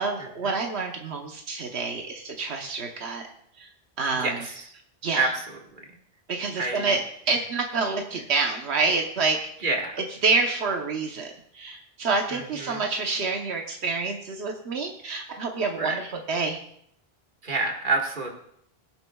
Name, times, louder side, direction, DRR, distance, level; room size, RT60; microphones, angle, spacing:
voice 1, 0.0-3.2 3.6-3.7 4.0-4.3 5.0-5.3 6.3-7.0 7.3-9.7 10.2-16.0 16.3-16.6, right 4 dB, 90° right, 2 dB, 1.2 m, -27 dB
voice 2, 4.2-4.7 5.1-5.9 6.6-7.0 9.6-9.9 12.3-12.8 15.8-16.0 17.4-18.3, right 3 dB, 50° right, 0 dB, 1.8 m, -28 dB
21.0 x 7.7 x 2.3 m, 0.70 s
omnidirectional pair, 1.1 m